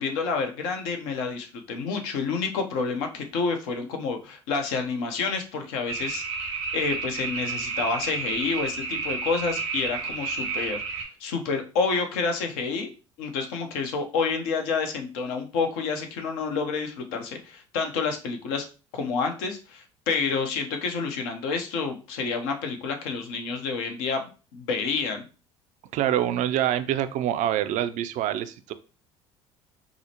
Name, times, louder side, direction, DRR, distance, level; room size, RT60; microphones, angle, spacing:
voice 1, 0.0-10.8 11.2-12.9 13.2-18.6 18.9-24.2 24.5-25.3, left 4 dB, 70° left, 4 dB, 0.8 m, -29 dB
sound 1, 5.9-11.0, right 4 dB, 85° right, 1.0 m, -31 dB
voice 2, 25.9-28.7, right 11 dB, 55° right, 11 dB, 0.4 m, -25 dB
4.8 x 2.0 x 2.8 m, 0.34 s
hypercardioid pair, 65°, 15 cm